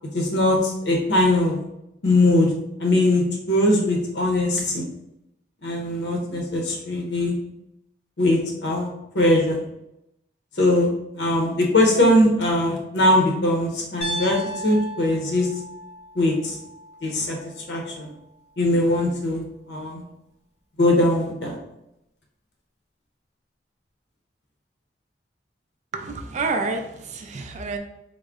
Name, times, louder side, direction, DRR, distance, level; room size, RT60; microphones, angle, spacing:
voice 1, 0.1-1.6 2.0-2.5 2.8-4.8 5.6-7.3 8.2-8.9 9.1-9.6 10.6-10.9 11.1-15.5 16.1-16.6 17.0-17.4 17.7-18.1 18.6-20.0 20.8-21.6, left 1 dB, 75° left, 0 dB, 0.7 m, -21 dB
Piano, 14.0-18.1, right 1 dB, 35° left, 0.6 m, -36 dB
voice 2, 25.9-27.8, right 3 dB, 40° right, 5 dB, 0.4 m, -28 dB
3.6 x 2.1 x 3.5 m, 0.85 s
head